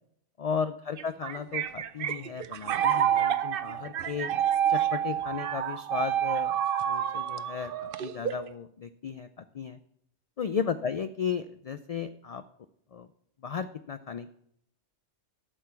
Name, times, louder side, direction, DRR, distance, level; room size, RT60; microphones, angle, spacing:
voice 1, 0.4-4.3 4.7-9.8 10.4-12.4 12.9-13.1 13.4-14.3, left 6 dB, 60° left, 11 dB, 0.4 m, -35 dB
sound 1, 1.0-8.5, right 10 dB, 60° right, 0.7 m, -28 dB
12.0 x 6.7 x 5.7 m, 0.71 s
omnidirectional pair, 1.2 m